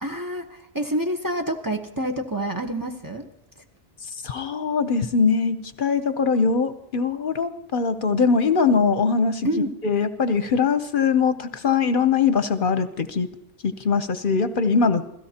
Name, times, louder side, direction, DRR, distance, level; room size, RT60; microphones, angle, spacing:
voice 1, 0.0-3.3 9.4-9.8, right 1 dB, 20° right, 3 dB, 1.0 m, -27 dB
voice 2, 4.0-9.5 9.8-13.3 13.6-15.1, left 5 dB, 60° left, 11 dB, 0.9 m, -22 dB
26.5 x 16.5 x 2.8 m, 0.80 s
omnidirectional pair, 1.1 m